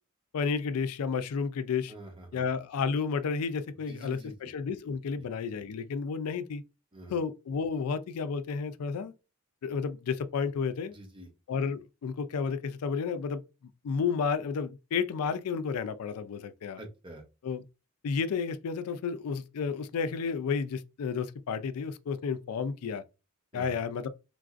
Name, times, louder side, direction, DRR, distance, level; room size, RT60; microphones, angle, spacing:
voice 1, 0.3-1.9 2.3-6.6 7.1-9.1 9.6-10.9 11.5-13.4 13.8-16.8 17.4-17.6 18.0-23.0 23.5-24.1, left 5 dB, 90° left, 0.4 m, -31 dB
voice 2, 1.9-2.5 3.9-4.4 6.9-7.2 10.9-11.3 16.8-17.2 23.5-23.8, right 1 dB, 20° right, 0.7 m, -46 dB
3.8 x 2.4 x 2.4 m
head